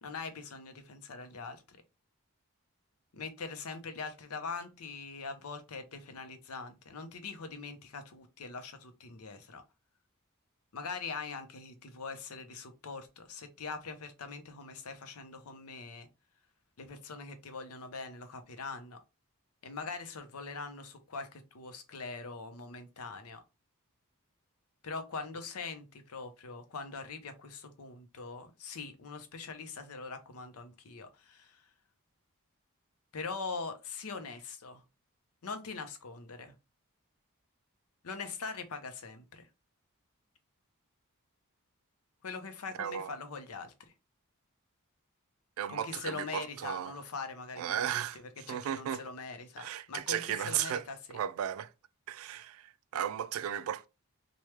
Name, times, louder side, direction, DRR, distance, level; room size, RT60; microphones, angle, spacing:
voice 1, 0.0-1.8 3.1-9.6 10.7-16.1 16.8-19.0 19.6-23.4 24.8-31.6 33.1-34.8 35.4-36.5 38.0-39.5 42.2-43.7 45.7-51.2, left 4 dB, 75° left, 0.6 m, -42 dB
voice 2, 42.8-43.1 45.6-47.0 47.6-49.0 49.6-50.8 51.1-51.7 52.1-53.9, right 9 dB, 65° right, 0.3 m, -35 dB
3.0 x 2.3 x 3.2 m
head